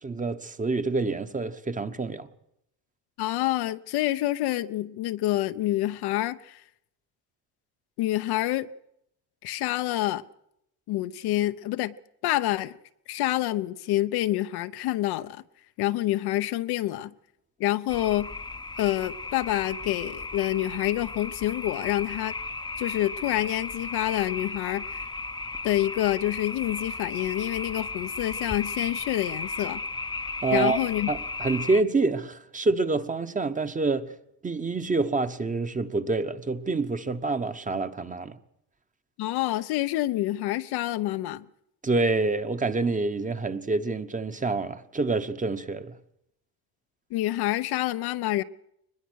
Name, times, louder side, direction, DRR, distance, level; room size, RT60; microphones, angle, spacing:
voice 1, 0.0-2.3 30.4-30.8 31.1-34.1 34.4-38.4 41.8-46.0, right 3 dB, 20° right, 1.1 m, -27 dB
voice 2, 3.2-6.6 8.0-8.7 9.4-10.2 10.9-12.0 12.2-12.8 13.1-15.4 15.8-17.1 17.6-18.3 18.8-22.3 22.8-25.1 25.6-29.8 30.5-31.1 39.2-41.5 47.1-48.4, left 15 dB, 70° left, 0.9 m, -27 dB
sound 1, 17.9-31.8, left 3 dB, 10° left, 0.8 m, -35 dB
22.0 x 20.5 x 6.4 m
cardioid pair, 105°, 40 cm